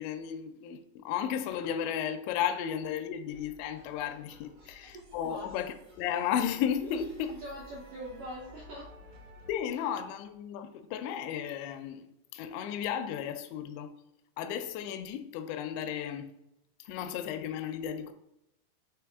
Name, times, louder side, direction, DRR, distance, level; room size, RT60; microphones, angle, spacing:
voice 1, 0.0-7.1 9.5-12.1 12.3-13.9 14.4-16.3 16.9-18.1, left 9 dB, 85° left, 2.8 m, -34 dB
sound 1, 3.3-9.5, equal, 60° right, 1.1 m, -54 dB
voice 2, 4.6-5.5 7.3-8.9, equal, 80° right, 1.8 m, -44 dB
8.7 x 3.2 x 3.4 m
omnidirectional pair, 5.0 m